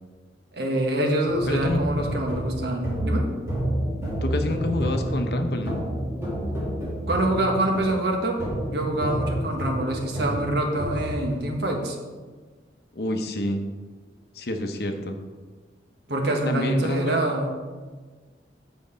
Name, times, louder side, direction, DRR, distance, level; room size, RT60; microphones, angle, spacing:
voice 1, 0.5-3.2 7.1-8.4 8.6-12.0 16.1-17.5, right 1 dB, 65° right, 1 dB, 1.3 m, -25 dB
sound 1, 1.3-11.3, equal, 15° right, 2.2 m, -29 dB
voice 2, 1.5-1.8 4.2-5.8 12.9-13.6 14.3-15.2 16.4-17.2, left 1 dB, 60° left, 5 dB, 0.8 m, -28 dB
7.6 x 5.2 x 5.0 m, 1.4 s
head